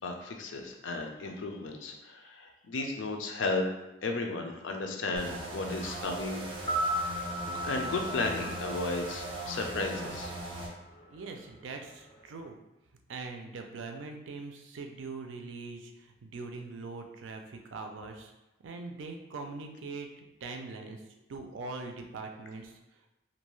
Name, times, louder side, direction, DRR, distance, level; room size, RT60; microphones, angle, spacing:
voice 1, 0.0-3.7 4.0-6.4 7.4-10.3, left 3 dB, 90° left, 2 dB, 0.5 m, -34 dB
sound 1, 5.2-10.7, right 1 dB, 30° right, 0.5 m, -39 dB
sound 2, 6.6-10.7 11.0-11.1, right 1 dB, 30° left, 0.4 m, -36 dB
voice 2, 11.1-12.6 13.1-18.3 18.6-21.0 21.3-23.1, right 3 dB, 90° right, 4 dB, 0.4 m, -42 dB
2.6 x 2.2 x 3.0 m, 0.97 s
head